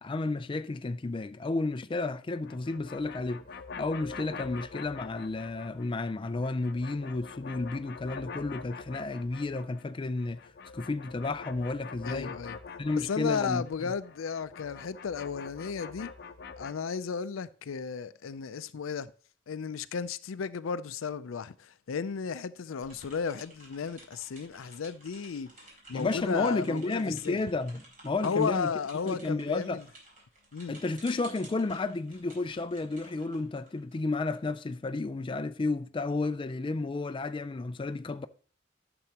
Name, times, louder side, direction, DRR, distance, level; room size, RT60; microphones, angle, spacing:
voice 1, 0.0-3.4 3.8-12.4 12.8-13.9 25.9-28.7 29.1-29.8 30.7-38.3, left 3 dB, 25° left, 0.4 m, -32 dB
sound 1, 2.3-5.9 6.2-9.9 10.2-16.7, left 5 dB, 55° left, 0.7 m, -45 dB
voice 2, 12.1-12.6 13.1-16.1 16.6-19.1 19.5-25.5 25.9-27.4 28.2-29.8 30.5-30.7, left 6 dB, 85° left, 0.5 m, -34 dB
sound 2, 22.8-34.4, right 1 dB, 45° right, 4.5 m, -54 dB
12.0 x 6.9 x 2.9 m
head